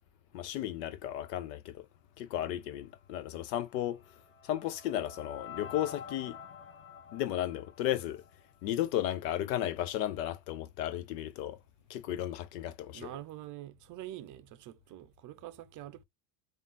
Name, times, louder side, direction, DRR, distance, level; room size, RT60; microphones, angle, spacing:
voice 1, 0.3-1.9 2.2-4.0 4.4-6.4 7.1-8.2 8.6-11.6 11.9-13.1, left 12 dB, 80° left, 0.8 m, -34 dB
voice 2, 2.4-2.7 4.9-5.1 12.9-16.0, right 13 dB, 40° right, 0.5 m, -46 dB
sound 1, 3.6-8.8, left 7 dB, 25° left, 0.8 m, -48 dB
3.7 x 2.5 x 3.8 m
supercardioid pair, 105°, 49 cm